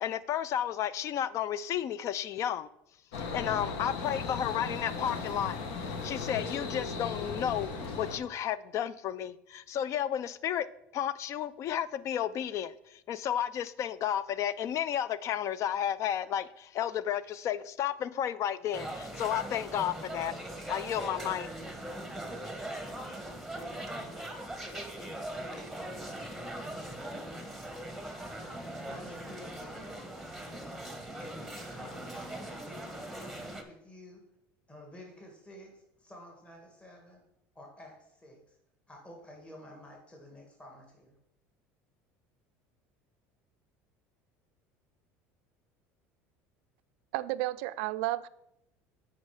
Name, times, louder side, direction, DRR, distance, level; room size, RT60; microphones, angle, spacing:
voice 1, 0.0-2.7 3.2-5.6 6.0-7.7 8.0-10.7 10.9-20.3 20.7-21.5, left 10 dB, 50° left, 0.4 m, -32 dB
sound 1, 3.1-8.2, left 4 dB, 80° left, 1.2 m, -37 dB
sound 2, 18.7-33.6, right 1 dB, ahead, 1.3 m, -40 dB
voice 2, 28.8-30.0 31.2-34.2 34.7-37.2 37.6-38.6 38.9-41.1, left 1 dB, 15° left, 1.9 m, -51 dB
voice 3, 47.1-48.3, right 16 dB, 80° right, 0.4 m, -32 dB
8.1 x 5.1 x 4.9 m
supercardioid pair, 100°, 6 cm